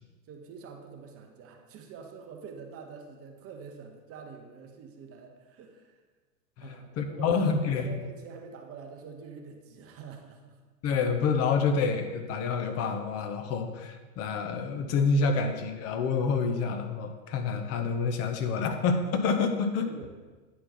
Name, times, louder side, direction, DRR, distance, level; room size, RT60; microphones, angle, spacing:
voice 1, 0.3-6.0 6.6-10.6 19.8-20.1, right 5 dB, 30° right, 3 dB, 1.0 m, -46 dB
voice 2, 6.6-7.9 10.8-19.9, left 4 dB, 30° left, 7 dB, 0.8 m, -28 dB
9.4 x 4.4 x 4.3 m, 1.3 s
hypercardioid pair, 105°, 48 cm